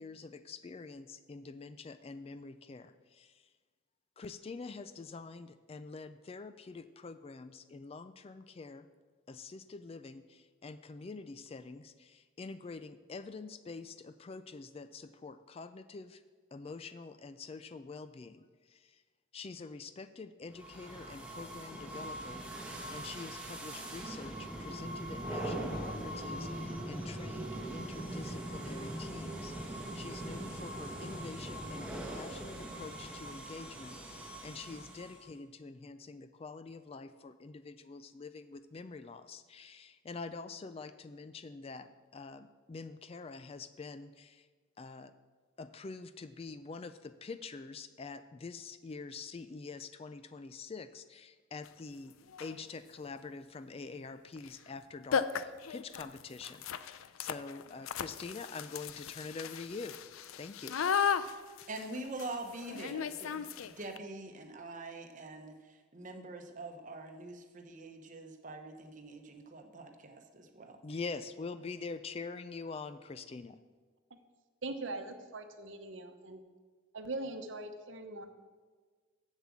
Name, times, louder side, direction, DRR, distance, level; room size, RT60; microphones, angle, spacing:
voice 1, 0.0-3.4 4.2-8.9 9.3-16.2 16.5-19.0 19.3-44.5 44.8-45.1 45.6-52.1 52.4-60.0 60.4-60.8 70.8-73.6, left 4 dB, 30° left, 11 dB, 0.3 m, -46 dB
sound 1, 20.5-35.3, right 1 dB, 5° right, 1.2 m, -41 dB
sound 2, 51.6-51.7 52.3-52.6 54.4-54.5 54.8-54.9 55.1-64.0, left 7 dB, 90° left, 0.4 m, -36 dB
voice 2, 61.7-70.8, right 2 dB, 40° right, 4 dB, 1.0 m, -45 dB
voice 3, 74.6-76.4 76.9-78.3, right 2 dB, 65° right, 7 dB, 0.9 m, -41 dB
7.5 x 7.3 x 7.2 m, 1.4 s
head